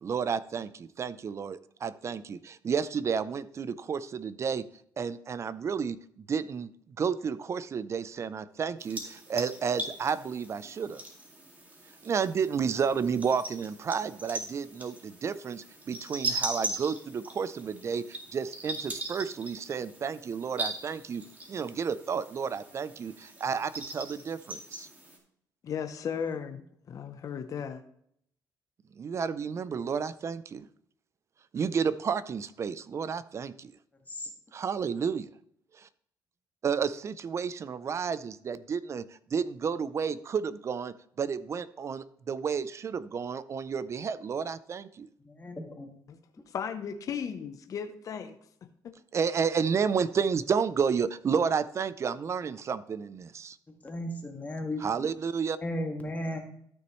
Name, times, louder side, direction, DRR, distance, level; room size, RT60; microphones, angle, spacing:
voice 1, 0.0-4.7 5.0-6.7 7.0-11.0 12.0-21.2 21.5-24.9 29.0-30.7 31.5-33.7 34.5-35.3 36.6-39.1 39.3-45.1 49.1-53.6 54.8-55.6, right 6 dB, 40° right, 16 dB, 0.5 m, -31 dB
sound 1, 8.8-25.2, right 2 dB, 20° right, 2.1 m, -40 dB
voice 2, 25.6-27.8 46.5-48.7, left 7 dB, 50° left, 8 dB, 0.7 m, -36 dB
voice 3, 45.2-45.9 53.8-55.1 55.6-56.4, left 1 dB, 20° left, 3 dB, 1.8 m, -35 dB
13.0 x 6.2 x 3.1 m, 0.67 s
cardioid pair, 105°, 7 cm